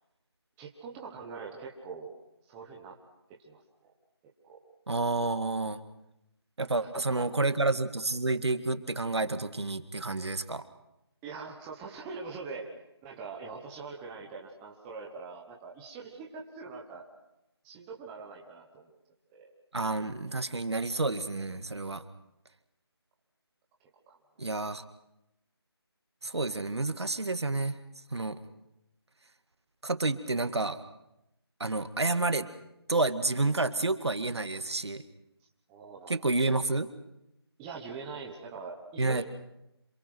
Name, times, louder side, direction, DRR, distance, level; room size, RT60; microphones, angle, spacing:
voice 1, 0.6-2.1 2.5-3.0 3.3-3.9 4.4-4.6 6.6-6.7 7.1-7.3 11.2-12.8 13.0-17.0 17.6-18.9 19.3-19.5 24.1-24.4 35.7-36.6 37.6-39.2, right 4 dB, 5° right, -1 dB, 1.2 m, -43 dB
voice 2, 4.9-5.8 6.6-10.6 19.7-22.0 24.4-24.8 26.2-27.8 28.1-28.4 29.8-30.8 31.6-32.5 32.9-35.0 36.1-36.9 39.0-39.2, right 2 dB, 75° right, 10 dB, 2.0 m, -29 dB
27.0 x 22.5 x 6.1 m, 0.87 s
figure-of-eight pair, 170°, 14 cm